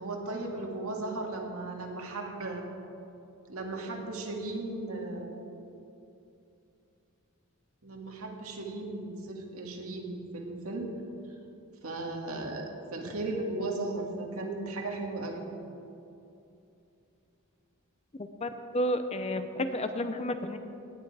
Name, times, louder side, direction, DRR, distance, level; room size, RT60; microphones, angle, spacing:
voice 1, 0.0-2.7 3.5-5.4 7.8-10.9 11.8-15.4, right 2 dB, 75° right, 1 dB, 2.0 m, -36 dB
voice 2, 18.2-20.6, left 1 dB, 30° left, 9 dB, 0.6 m, -31 dB
18.0 x 9.7 x 4.8 m, 2.8 s
head